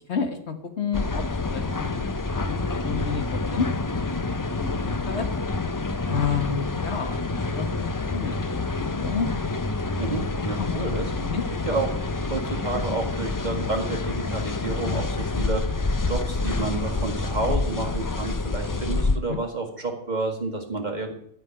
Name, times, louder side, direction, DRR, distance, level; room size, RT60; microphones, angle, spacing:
voice 1, 0.1-1.2 1.5-3.7 4.6-5.3 6.0-7.3 7.5-9.3 10.6-10.7 11.2-11.4 19.1-19.4, left 6 dB, 75° left, 6 dB, 1.6 m, -30 dB
sound 1, 0.9-19.2, left 3 dB, 25° left, 0.5 m, -27 dB
voice 2, 10.0-11.1 11.7-11.9 12.3-21.1, right 3 dB, 40° right, 2 dB, 2.0 m, -30 dB
13.5 x 5.6 x 9.2 m, 0.69 s
omnidirectional pair, 1.1 m